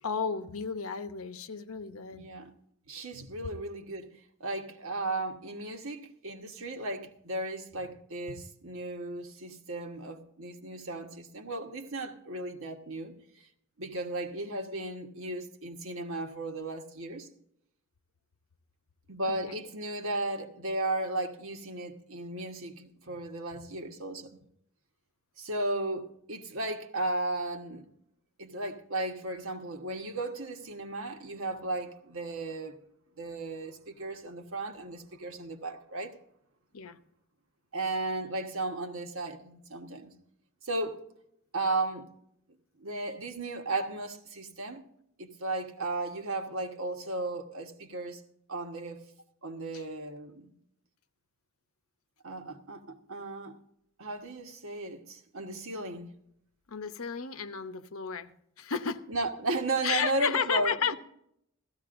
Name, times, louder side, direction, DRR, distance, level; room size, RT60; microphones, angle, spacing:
voice 1, 0.0-2.3 19.3-19.7 36.7-37.0 49.7-49.8 56.7-58.3 58.6-59.0 59.8-61.0, left 6 dB, 75° left, 0.8 m, -33 dB
voice 2, 2.1-2.5 2.9-4.1 4.4-13.2 13.8-17.3 19.1-24.4 25.4-27.9 28.4-32.8 33.2-36.2 37.7-40.1 40.6-41.0 41.5-42.1 42.8-44.8 45.2-48.2 48.5-49.1 49.4-50.5 52.2-53.6 54.0-56.1 59.1-60.7, right 2 dB, 70° right, 1.3 m, -35 dB
16.0 x 14.5 x 2.6 m
head